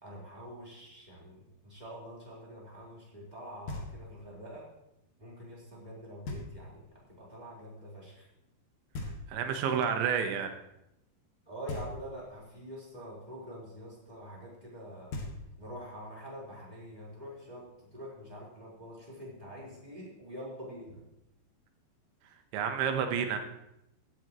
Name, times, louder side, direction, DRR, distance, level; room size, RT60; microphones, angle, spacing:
voice 1, 0.0-4.6 5.2-8.3 11.5-15.1 15.6-21.0, equal, 10° right, -6 dB, 3.8 m, -46 dB
Knock, 3.7-4.3 6.3-6.9 8.9-9.7 11.7-12.4 14.7-14.8 15.1-15.9, left 2 dB, 55° left, 2.5 m, -41 dB
voice 2, 9.3-10.5 22.5-23.4, right 7 dB, 85° right, 6 dB, 3.5 m, -29 dB
16.0 x 11.5 x 3.1 m, 0.84 s
omnidirectional pair, 5.2 m